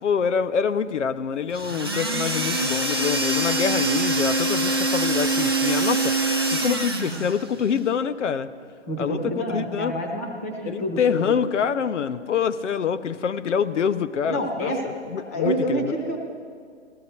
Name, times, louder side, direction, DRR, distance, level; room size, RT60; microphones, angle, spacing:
voice 1, 0.0-6.2 6.5-8.5 9.0-9.9 10.6-14.7 15.1-15.9, left 7 dB, 80° left, 14 dB, 0.8 m, -25 dB
sound 1, 1.5-7.4, right 2 dB, 20° right, 0.4 m, -24 dB
voice 2, 8.9-11.5 14.3-14.9 15.3-16.2, equal, 15° left, 1 dB, 0.7 m, -28 dB
15.0 x 13.5 x 4.4 m, 2.1 s
hypercardioid pair, 175°, 36 cm